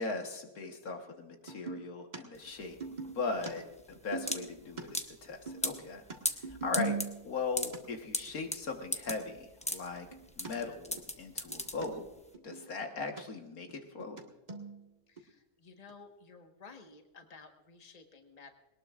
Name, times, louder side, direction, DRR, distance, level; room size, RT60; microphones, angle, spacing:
voice 1, 0.0-3.6 3.9-6.0 6.5-7.0 7.2-10.1 10.4-12.1 12.4-14.2, left 4 dB, 75° left, 3 dB, 1.9 m, -39 dB
sound 1, 1.5-1.8 2.1-2.2 2.5-4.8 5.1-7.4 7.7-7.8 8.3-8.4 8.8-8.9 9.1-9.2 9.4-10.5 11.0-11.1 11.3-11.9 12.2-13.2 13.5-14.2 14.5-14.8 15.2-15.3 15.9-16.0, right 3 dB, 30° right, 1.7 m, -40 dB
sound 2, 2.3-12.3, left 1 dB, 5° left, 0.7 m, -38 dB
voice 2, 15.1-18.5, left 4 dB, 30° left, 4 dB, 1.4 m, -54 dB
21.0 x 19.0 x 2.5 m, 1.0 s
omnidirectional pair, 1.5 m